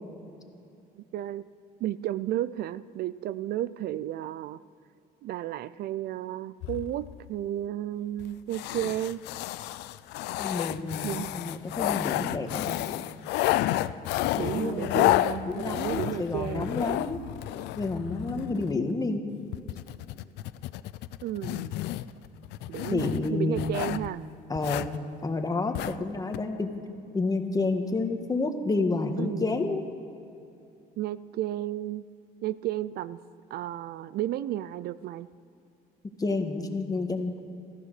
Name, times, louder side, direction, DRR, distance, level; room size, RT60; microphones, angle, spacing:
voice 1, 1.0-1.5 1.8-4.6 5.2-9.2 11.0-11.3 14.3-16.7 21.2-21.7 22.7-24.3 29.2-29.7 31.0-32.1 32.4-33.2 33.5-35.3, right 13 dB, 65° right, 17 dB, 0.4 m, -33 dB
sound 1, 6.6-7.3 8.2-8.3 8.5-18.8 19.5-24.1 24.5-25.0 25.7-26.0 26.3-26.4, left 15 dB, 85° left, 0.5 m, -31 dB
voice 2, 10.4-12.8 14.4-17.2 17.8-19.2 22.9-23.6 24.5-24.9 25.2-26.7 27.1-29.9 36.2-37.4, left 3 dB, 20° left, 5 dB, 1.5 m, -29 dB
15.0 x 14.0 x 6.7 m, 2.7 s
cardioid pair, 110°, 17 cm